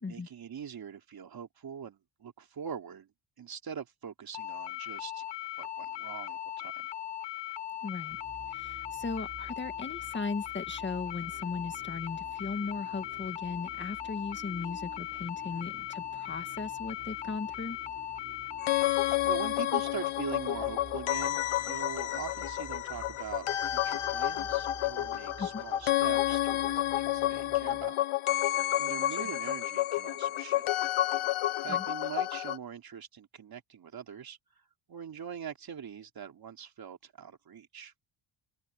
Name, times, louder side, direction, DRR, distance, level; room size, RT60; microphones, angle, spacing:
voice 1, 0.0-3.1 3.4-5.3 5.6-6.9 19.2-28.0 28.4-28.5 28.8-30.8 31.6-34.4 34.9-37.9, right 8 dB, 45° right, 3.5 m, -42 dB
sound 1, 4.3-19.2, left 12 dB, 60° left, 1.9 m, -39 dB
voice 2, 7.8-8.2 8.5-17.8 25.4-25.6 29.2-29.3 31.7-31.8, left 4 dB, 20° left, 1.9 m, -37 dB
sound 2, 8.1-27.9, right 5 dB, 30° right, 5.9 m, -52 dB
sound 3, 18.6-32.6, left 14 dB, 80° left, 1.4 m, -30 dB
open air
wide cardioid pair, 160°, 49 cm